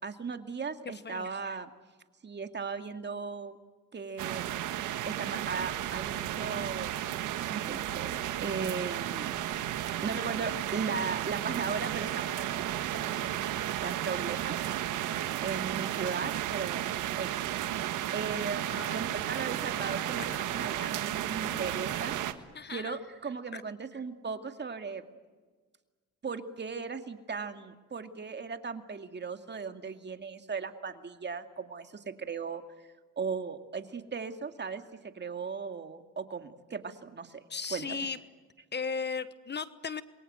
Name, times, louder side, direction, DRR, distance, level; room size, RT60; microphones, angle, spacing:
voice 1, 0.0-1.7 2.2-3.6 3.9-4.7 5.0-7.2 7.5-8.1 8.4-9.3 9.9-14.6 15.4-17.5 17.8-22.1 22.7-25.0 26.2-32.6 33.2-37.4 37.7-38.0, right 5 dB, 35° right, 7 dB, 2.3 m, -37 dB
sound 1, 4.2-22.3, right 12 dB, 90° right, 1.6 m, -33 dB
voice 2, 18.7-19.0 20.2-20.4 22.5-23.0 23.5-23.6 37.5-38.2 38.7-40.0, left 5 dB, 35° left, 14 dB, 1.2 m, -36 dB
28.0 x 23.0 x 8.0 m, 1.4 s
cardioid pair, 90°, 30 cm